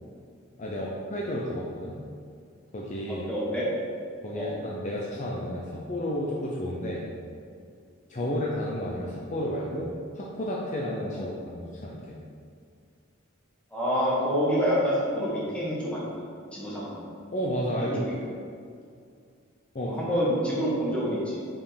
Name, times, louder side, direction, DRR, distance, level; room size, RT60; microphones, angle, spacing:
voice 1, 0.6-2.0 2.7-3.3 4.2-7.1 8.1-12.2 17.3-18.0 19.7-20.0, equal, 35° left, -3 dB, 0.7 m, -32 dB
voice 2, 3.2-3.6 4.3-4.5 8.2-8.3 11.1-11.3 13.7-16.1 16.5-17.0 17.8-18.1 19.8-21.4, equal, 5° left, -7 dB, 1.7 m, -27 dB
5.6 x 4.8 x 5.1 m, 2.3 s
head